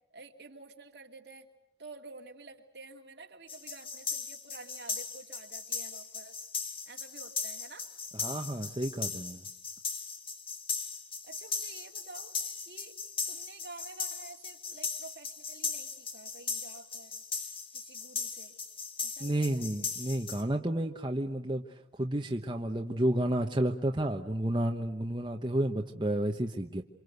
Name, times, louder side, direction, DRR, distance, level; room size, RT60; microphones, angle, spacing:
voice 1, 0.1-1.5 1.8-6.5 6.9-7.9 11.2-12.3 12.6-13.0 13.3-17.2 17.7-18.5 19.0-19.6, right 3 dB, 60° right, 3 dB, 2.6 m, -50 dB
sound 1, 3.5-20.4, left 5 dB, 30° left, 1.6 m, -38 dB
voice 2, 8.1-9.4 19.2-26.8, right 1 dB, 25° right, 3 dB, 1.0 m, -31 dB
28.0 x 25.5 x 8.1 m, 0.80 s
head